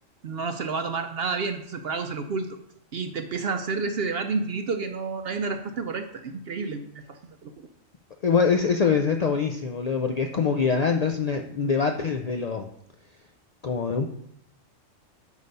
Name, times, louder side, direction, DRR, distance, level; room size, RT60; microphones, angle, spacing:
voice 1, 0.2-2.5 2.9-7.5, right 4 dB, 60° right, 7 dB, 0.7 m, -30 dB
voice 2, 8.2-12.7 13.6-14.1, left 5 dB, 75° left, 4 dB, 0.3 m, -24 dB
8.4 x 5.0 x 5.4 m, 0.76 s
omnidirectional pair, 1.3 m